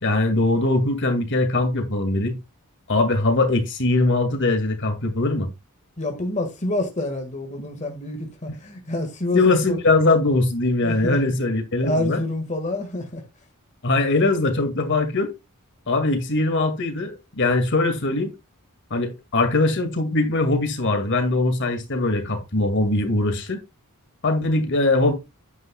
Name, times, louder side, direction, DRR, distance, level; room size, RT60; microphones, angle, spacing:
voice 1, 0.0-2.4 2.9-5.5 9.3-12.2 13.8-15.3 15.9-18.3 18.9-23.6 24.2-25.1, left 2 dB, 55° left, 2.1 m, -21 dB
voice 2, 6.0-9.8 10.8-11.2 11.8-13.2, left 1 dB, 35° left, 1.7 m, -27 dB
9.5 x 8.9 x 2.3 m
head